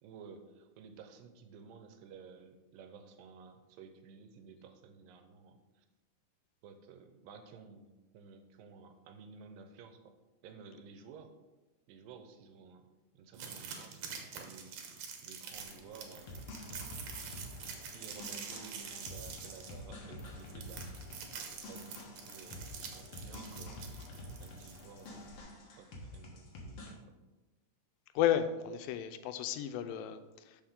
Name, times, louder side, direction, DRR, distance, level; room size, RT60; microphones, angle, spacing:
voice 1, 0.0-5.9 6.6-10.2 10.4-11.3 11.9-12.9 13.1-14.7 15.2-16.4 17.9-20.9 21.5-23.9 24.4-27.2, right 5 dB, 85° right, 7 dB, 2.4 m, -54 dB
sound 1, 13.3-25.1, right 6 dB, 65° right, 2.0 m, -46 dB
sound 2, 15.5-25.4, left 3 dB, 70° left, 2.3 m, -58 dB
sound 3, 16.3-26.9, left 1 dB, 55° left, 2.1 m, -48 dB
voice 2, 28.2-30.6, left 10 dB, 90° left, 10 dB, 2.3 m, -33 dB
12.0 x 5.0 x 3.7 m, 1.2 s
omnidirectional pair, 4.0 m